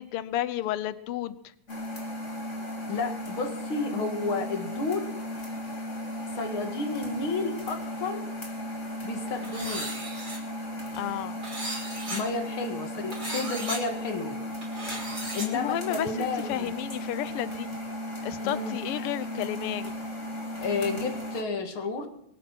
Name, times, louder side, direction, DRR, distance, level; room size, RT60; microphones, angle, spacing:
voice 1, 0.0-1.4 10.9-11.4 15.2-17.7 18.2-19.9, left 12 dB, 80° left, 14 dB, 1.3 m, -32 dB
sound 1, 1.7-21.4, left 1 dB, 25° left, 2.6 m, -36 dB
voice 2, 2.9-5.2 6.3-8.3 9.0-9.9 12.1-14.4 15.3-16.7 18.4-18.8 20.6-22.1, left 4 dB, 45° left, 5 dB, 2.4 m, -31 dB
sound 2, 9.4-10.4 11.4-12.2 13.1-13.8 14.6-15.5, right 2 dB, 30° right, 5.0 m, -35 dB
23.5 x 8.6 x 6.1 m, 0.72 s
omnidirectional pair, 3.5 m